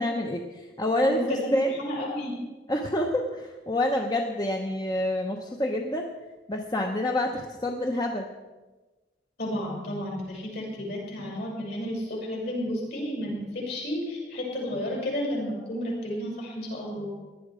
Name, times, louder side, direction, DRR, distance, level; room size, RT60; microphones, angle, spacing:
voice 1, 0.0-1.2 1.5-1.7 2.7-6.1 6.5-8.3, left 1 dB, 20° left, 2 dB, 0.9 m, -27 dB
voice 2, 1.0-2.4 9.4-17.2, left 1 dB, 60° left, -3 dB, 6.4 m, -32 dB
18.0 x 11.5 x 5.0 m, 1.2 s
head